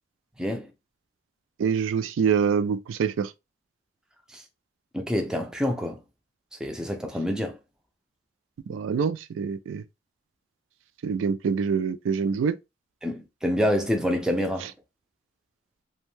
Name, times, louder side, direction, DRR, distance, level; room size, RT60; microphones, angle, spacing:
voice 1, 0.4-0.7 4.3-4.4 4.9-6.0 6.6-7.6 13.0-14.7, equal, 5° right, 0.3 m, -27 dB
voice 2, 1.6-3.3 8.7-9.8 11.0-12.6 14.6-14.7, right 6 dB, 90° right, 0.3 m, -25 dB
2.6 x 2.2 x 3.1 m
head